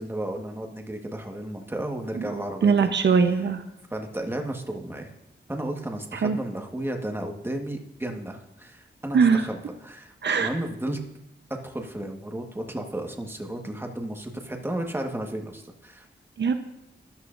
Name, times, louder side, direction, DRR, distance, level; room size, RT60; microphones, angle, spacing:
voice 1, 0.0-2.9 3.3-3.4 3.9-5.1 5.5-11.0 11.6-16.1, right 1 dB, 10° right, 3 dB, 1.4 m, -33 dB
voice 2, 2.6-3.6 6.2-6.4 9.1-9.4 10.2-10.5 16.4-16.5, right 5 dB, 70° right, 7 dB, 0.8 m, -21 dB
13.0 x 11.0 x 2.6 m, 0.89 s
wide cardioid pair, 105°, 19 cm